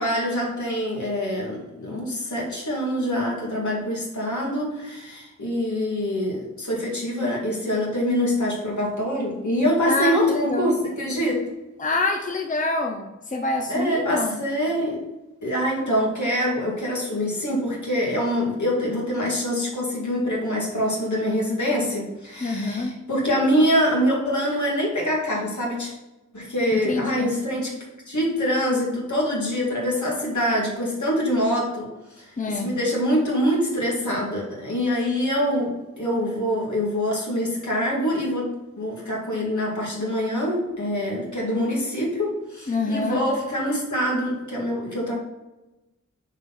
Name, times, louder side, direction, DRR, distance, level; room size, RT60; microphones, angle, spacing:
voice 1, 0.0-11.5 13.7-15.0 15.4-26.0 26.3-27.7 28.1-31.9 32.2-45.1, equal, 70° left, -4 dB, 2.2 m, -25 dB
voice 2, 9.9-10.8 11.8-14.4 22.4-23.0 26.7-27.3 32.4-32.8 42.7-43.2, left 2 dB, 25° left, 2 dB, 0.7 m, -26 dB
6.2 x 3.9 x 4.3 m, 1.0 s
wide cardioid pair, 60°, 31 cm